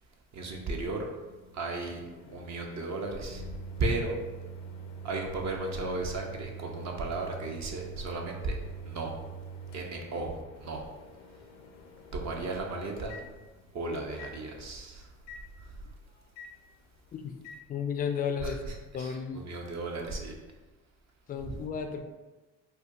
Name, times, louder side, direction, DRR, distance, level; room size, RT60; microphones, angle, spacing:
voice 1, 0.3-1.1 1.5-2.0 2.3-3.5 3.8-4.2 5.0-8.6 8.8-9.2 9.7-10.8 12.1-13.2 13.7-15.1 15.6-15.7 18.4-20.4 21.5-21.6, right 2 dB, 45° right, 1 dB, 0.6 m, -35 dB
Microwave oven, 1.2-13.8 14.2-14.3 15.3-15.4 16.4-16.5 17.4-17.6, right 4 dB, 85° left, 0.5 m, -45 dB
voice 2, 17.7-18.6 18.9-19.4 21.3-22.0, left 7 dB, 25° left, 6 dB, 0.3 m, -33 dB
4.3 x 2.2 x 2.5 m, 1.2 s
supercardioid pair, 80°, 39 cm